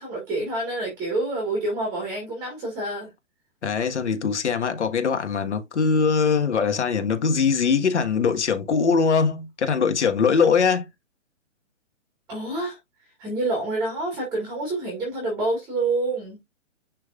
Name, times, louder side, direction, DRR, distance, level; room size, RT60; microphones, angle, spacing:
voice 1, 0.0-3.1 12.3-12.8 13.2-16.4, right 2 dB, 10° right, 1.8 m, -27 dB
voice 2, 3.6-10.9, left 5 dB, 60° left, 1.6 m, -22 dB
10.5 x 3.7 x 2.4 m
hypercardioid pair, 180°, 39 cm